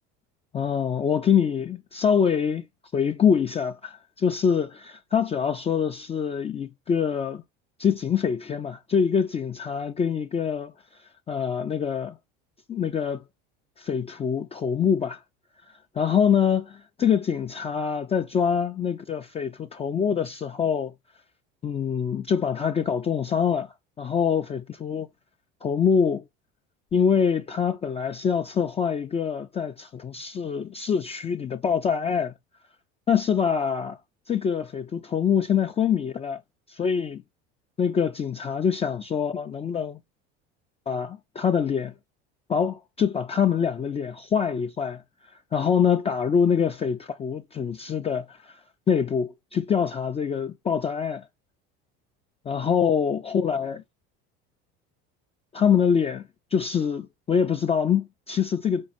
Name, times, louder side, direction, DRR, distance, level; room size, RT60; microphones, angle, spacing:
voice 1, 0.5-2.6 2.9-7.4 7.8-10.7 11.3-12.2 12.7-13.2 13.8-15.2 15.9-20.9 21.6-25.1 25.6-26.2 26.9-32.3 33.1-34.0 34.3-36.4 36.7-37.2 37.8-40.0 40.9-41.9 42.5-45.0 45.5-48.6 48.9-51.3 52.5-53.8 55.5-56.2 56.5-58.9, left 7 dB, 20° left, 0.4 m, -25 dB
5.3 x 2.3 x 2.5 m
supercardioid pair, 100°, 29 cm